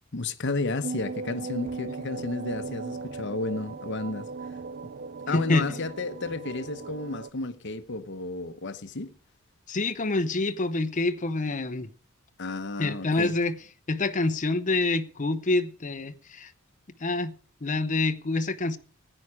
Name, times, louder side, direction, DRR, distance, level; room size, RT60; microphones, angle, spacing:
voice 1, 0.1-4.3 5.3-9.1 12.4-13.3, left 3 dB, 60° left, 1.0 m, -32 dB
sound 1, 0.8-7.3, right 4 dB, 50° right, 0.5 m, -37 dB
Thunder, 1.6-9.3 12.9-13.0 13.5-14.4, right 1 dB, 30° right, 2.8 m, -54 dB
voice 2, 5.3-5.8 9.7-11.9 12.8-13.6 13.9-16.5 17.0-17.3 17.6-18.8, left 2 dB, 40° left, 0.8 m, -27 dB
15.5 x 10.0 x 4.8 m
head